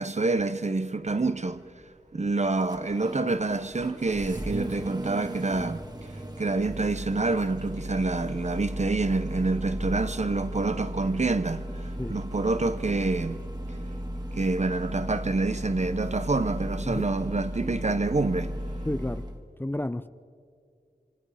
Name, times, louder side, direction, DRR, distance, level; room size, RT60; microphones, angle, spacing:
voice 1, 0.0-1.7 2.1-5.8 6.4-13.4 14.3-18.6, right 3 dB, 45° right, 0.9 m, -27 dB
Engine starting, 1.0-19.4, equal, 25° right, 1.7 m, -36 dB
voice 2, 18.9-19.2 19.6-20.1, left 1 dB, 15° left, 0.5 m, -31 dB
26.0 x 25.5 x 5.0 m
wide cardioid pair, 50°, 16 cm